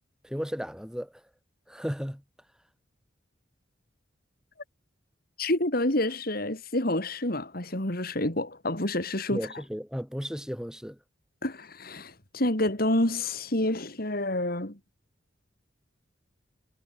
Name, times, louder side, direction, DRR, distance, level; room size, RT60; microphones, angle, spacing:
voice 1, 0.2-1.1 1.7-2.2 9.3-11.0, equal, 5° right, 6.0 m, -34 dB
voice 2, 5.4-9.4 11.4-14.8, left 1 dB, 50° left, 3.6 m, -28 dB
head